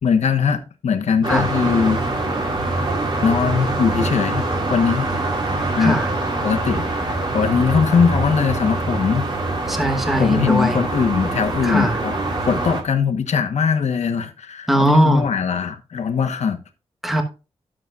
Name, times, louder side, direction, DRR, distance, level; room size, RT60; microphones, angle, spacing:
voice 1, 0.0-2.0 3.2-5.1 5.8-6.0 6.4-9.3 10.2-12.2 12.5-16.6, left 6 dB, 85° left, 1.1 m, -20 dB
sound 1, 1.2-12.8, right 2 dB, 45° right, 2.3 m, -24 dB
voice 2, 5.8-6.1 9.6-10.8 11.6-12.0 14.7-15.3 17.0-17.2, right 1 dB, ahead, 1.2 m, -19 dB
12.0 x 7.4 x 2.4 m
wide cardioid pair, 115°, 11 cm